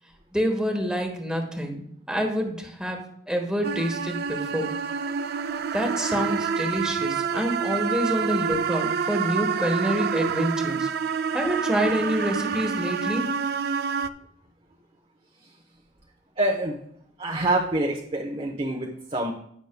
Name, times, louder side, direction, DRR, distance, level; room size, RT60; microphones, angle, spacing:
voice 1, 0.3-4.7 5.7-10.9 11.3-13.3, equal, 5° right, 2 dB, 1.2 m, -27 dB
sound 1, 3.6-14.1, right 6 dB, 55° right, 0.4 m, -27 dB
voice 2, 16.4-16.8 17.2-19.3, right 1 dB, 30° right, 0 dB, 0.9 m, -26 dB
16.0 x 6.2 x 2.2 m, 0.67 s
head